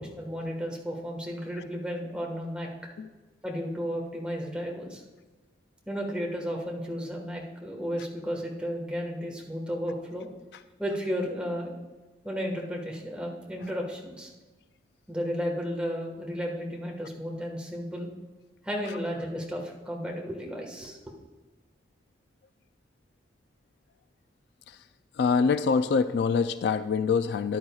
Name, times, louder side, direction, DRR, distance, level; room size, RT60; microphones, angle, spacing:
voice 1, 0.2-2.7 3.4-5.0 5.9-10.3 10.8-11.8 12.2-14.3 15.1-18.1 18.6-21.0, equal, 5° right, -1 dB, 1.4 m, -33 dB
voice 2, 25.2-27.6, left 5 dB, 60° left, 12 dB, 0.3 m, -24 dB
13.0 x 10.0 x 2.3 m, 1.2 s
head